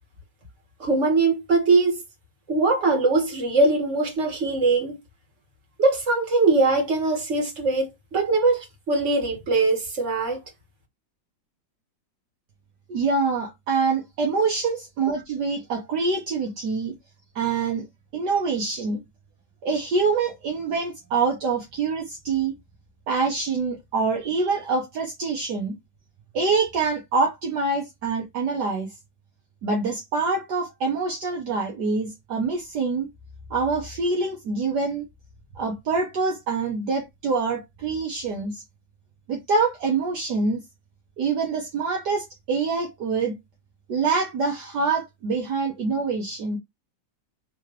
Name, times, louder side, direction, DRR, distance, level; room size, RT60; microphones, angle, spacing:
voice 1, 0.8-2.0 2.5-5.0 5.8-10.4, right 3 dB, 40° right, 2.0 m, -21 dB
voice 2, 12.9-16.9 17.3-17.9 18.1-19.0 19.6-22.5 23.1-25.8 26.3-28.9 29.6-33.1 33.5-35.1 35.5-38.6 39.3-40.6 41.2-43.4 43.9-46.6, right 4 dB, 65° right, 1.5 m, -25 dB
3.8 x 3.1 x 3.1 m
omnidirectional pair, 2.1 m